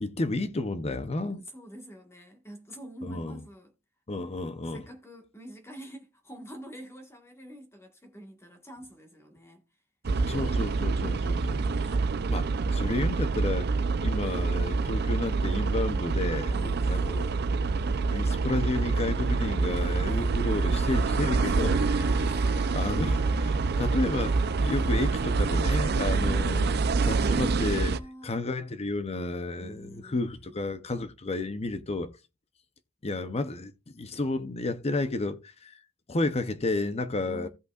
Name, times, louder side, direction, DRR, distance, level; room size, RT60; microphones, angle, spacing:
voice 1, 0.0-1.4 3.0-3.4 4.1-4.8 10.3-11.9 12.3-13.7 14.0-17.3 18.1-21.8 22.7-26.8 27.0-28.0 28.2-32.1 33.0-35.8 36.1-37.5, left 2 dB, 30° left, 0.7 m, -31 dB
voice 2, 1.4-3.7 4.6-9.6 14.2-14.5 16.5-17.4 20.1-20.4 21.4-21.7 22.2-22.6 24.7-25.0 26.4-28.3 29.6-30.6 37.3-37.5, equal, 15° left, 1.5 m, -47 dB
sound 1, 10.0-28.0, right 4 dB, 50° right, 0.5 m, -26 dB
Trumpet, 21.6-27.8, left 1 dB, 20° right, 1.7 m, -47 dB
16.0 x 5.4 x 2.4 m
head